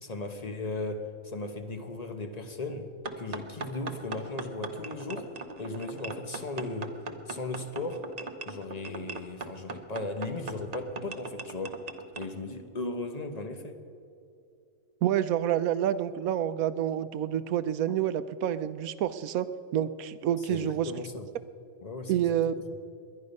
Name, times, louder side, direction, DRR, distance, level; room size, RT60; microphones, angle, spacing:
voice 1, 0.0-2.9 3.2-5.3 5.6-7.0 7.3-8.1 8.5-11.8 12.1-13.8 20.5-21.3 21.8-22.5, left 2 dB, 30° left, 6 dB, 1.0 m, -36 dB
sound 1, 3.0-12.3, right 3 dB, 35° right, 0.7 m, -40 dB
voice 2, 15.0-19.5 19.7-20.9 22.1-22.8, right 10 dB, 75° right, 13 dB, 1.0 m, -28 dB
21.0 x 10.5 x 5.4 m, 2.6 s
omnidirectional pair, 1.5 m